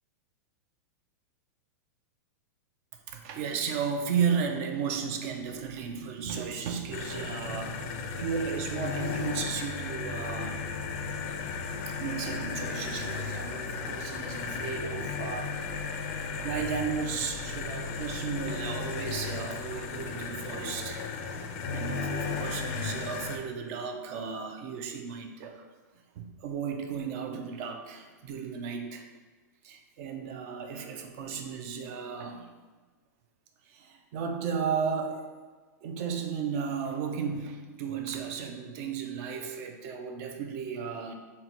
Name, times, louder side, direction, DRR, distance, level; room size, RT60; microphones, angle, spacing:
voice 1, 3.1-7.9 8.2-10.6 12.0-16.1 16.4-21.1 21.7-25.7 26.2-29.1 29.6-32.5 33.7-35.3 35.8-41.1, right 6 dB, 50° right, 4 dB, 0.4 m, -34 dB
sound 1, 6.9-23.4, left 5 dB, 50° left, 0.4 m, -35 dB
sound 2, 7.2-20.1, equal, 25° right, 1.1 m, -49 dB
3.9 x 2.2 x 2.8 m, 1.4 s
hypercardioid pair, 130°, 9 cm